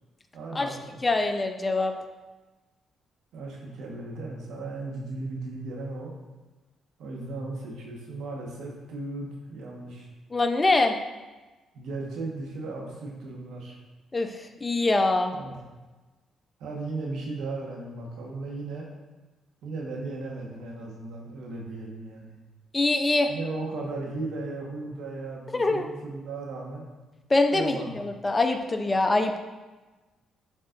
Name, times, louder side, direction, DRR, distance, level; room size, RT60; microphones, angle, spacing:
voice 1, 0.3-1.0 3.3-6.1 7.0-10.1 11.7-13.8 15.3-15.6 16.6-18.9 19.6-22.4 23.3-26.9 27.5-28.0, right 3 dB, 80° right, -1 dB, 1.3 m, -36 dB
voice 2, 1.0-1.9 10.3-11.0 14.1-14.4 14.6-15.3 22.7-23.3 25.5-25.9 27.3-27.8 28.0-29.4, left 2 dB, 20° left, 5 dB, 0.7 m, -23 dB
11.0 x 4.2 x 2.6 m, 1.2 s
cardioid pair, 90°, 0 cm